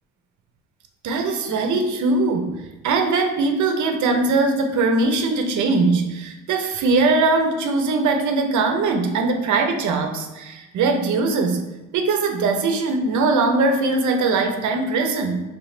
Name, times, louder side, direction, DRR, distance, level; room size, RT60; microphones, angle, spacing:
voice 1, 1.0-11.6 11.9-15.4, right 3 dB, 75° right, 5 dB, 0.7 m, -21 dB
3.4 x 3.2 x 4.9 m, 1.1 s
cardioid pair, 90°, 30 cm